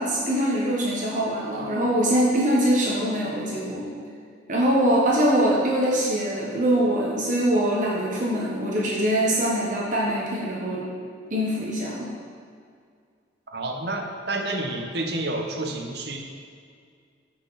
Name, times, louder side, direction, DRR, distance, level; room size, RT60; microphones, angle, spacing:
voice 1, 0.0-3.9 4.5-10.8 11.3-12.1, right 1 dB, 45° right, -4 dB, 1.4 m, -23 dB
voice 2, 13.5-16.2, right 2 dB, 60° right, 3 dB, 1.1 m, -29 dB
14.5 x 6.0 x 4.2 m, 2.1 s
head